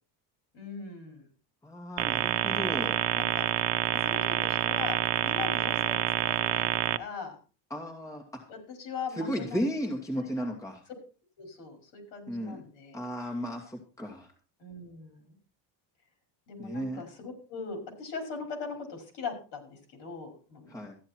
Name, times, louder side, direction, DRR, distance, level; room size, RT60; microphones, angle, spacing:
voice 1, 0.5-1.3 3.1-3.5 3.9-7.4 8.5-9.7 10.2-10.5 10.9-11.0 11.4-13.0 14.6-15.3 16.5-20.8, left 5 dB, 60° left, 4 dB, 5.4 m, -40 dB
voice 2, 1.6-3.0 7.7-8.4 9.1-10.8 12.3-12.6 12.9-14.3 16.6-17.0 20.7-20.9, equal, 5° left, 0 dB, 2.1 m, -34 dB
sound 1, 2.0-7.0, right 14 dB, 60° right, 0.8 m, -28 dB
14.0 x 10.5 x 4.4 m, 0.36 s
cardioid pair, 160°, 47 cm